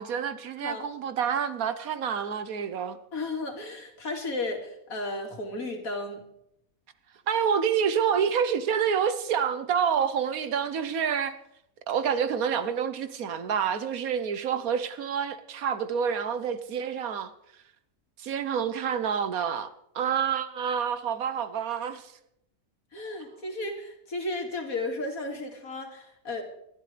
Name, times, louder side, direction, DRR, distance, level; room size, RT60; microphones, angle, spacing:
voice 1, 0.0-3.0 7.3-11.4 11.9-17.3 18.2-22.1, right 7 dB, 80° right, 1.4 m, -28 dB
voice 2, 3.1-6.2 22.9-26.4, left 2 dB, 75° left, 2.8 m, -34 dB
28.5 x 11.5 x 3.3 m
omnidirectional pair, 1.5 m